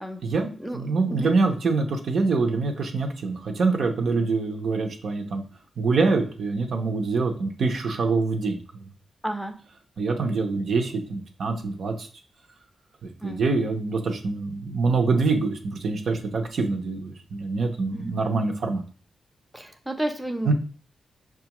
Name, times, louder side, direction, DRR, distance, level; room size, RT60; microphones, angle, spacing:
voice 1, 0.2-5.4 5.8-8.8 10.0-12.1 13.0-18.8 20.5-20.6, right 4 dB, 70° right, 3 dB, 0.7 m, -25 dB
voice 2, 9.2-9.5 13.2-13.4 17.9-18.1 19.5-20.5, right 1 dB, ahead, 4 dB, 0.6 m, -31 dB
6.0 x 2.4 x 2.9 m, 0.40 s
wide cardioid pair, 110°, 0 cm